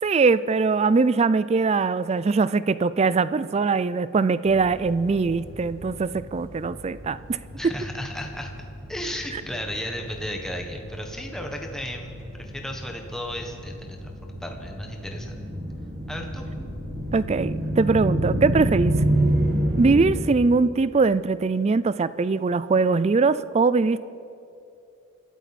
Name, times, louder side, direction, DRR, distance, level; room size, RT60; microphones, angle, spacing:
voice 1, 0.0-7.4 17.1-19.0 19.8-24.0, right 4 dB, 30° right, 16 dB, 0.4 m, -22 dB
sound 1, 4.5-20.1, right 1 dB, 50° right, 2.2 m, -30 dB
voice 2, 7.6-14.1 14.4-15.4 16.1-16.4, equal, ahead, 2 dB, 1.3 m, -34 dB
27.0 x 13.0 x 4.2 m, 2.6 s
head